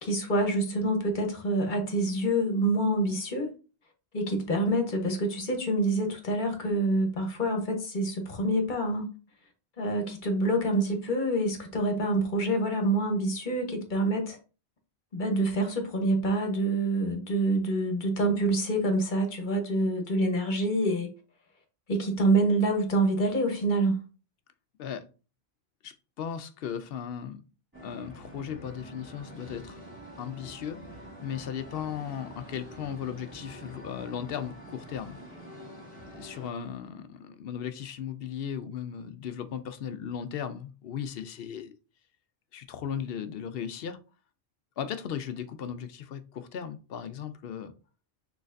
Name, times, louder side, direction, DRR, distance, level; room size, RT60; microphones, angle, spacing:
voice 1, 0.0-3.5 4.1-9.1 9.8-14.4 15.1-21.1 21.9-24.0, right 1 dB, 50° left, 1.1 m, -26 dB
voice 2, 25.8-27.4 27.8-29.8 30.2-30.8 31.2-35.2 36.2-41.7 42.5-44.0 44.8-47.7, left 8 dB, 70° left, 0.7 m, -36 dB
sound 1, 27.7-36.5, right 1 dB, 20° right, 1.8 m, -46 dB
6.3 x 3.2 x 2.5 m
omnidirectional pair, 1.1 m